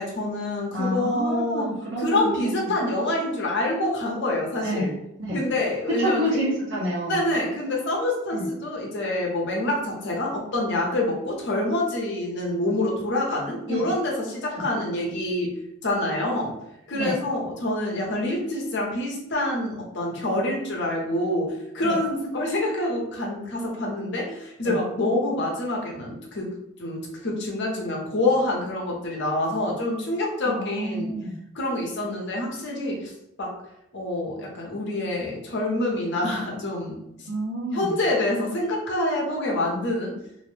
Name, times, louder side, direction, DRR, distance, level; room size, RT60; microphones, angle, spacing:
voice 1, 0.0-1.7 2.0-4.9 5.3-6.4 7.1-15.5 15.8-16.5 16.9-26.5 26.8-31.1 31.5-33.1 33.4-33.6 33.9-37.3 37.7-40.1, left 1 dB, 55° left, -1 dB, 0.7 m, -26 dB
voice 2, 0.7-2.7 4.6-4.9 5.3-5.4 6.0-7.2 8.3-8.5 13.7-13.9 14.6-14.7 16.9-17.2 21.8-22.0 24.6-24.7 30.4-31.3 37.3-37.9, equal, 60° right, -5 dB, 1.0 m, -28 dB
2.6 x 2.0 x 3.1 m, 0.81 s
head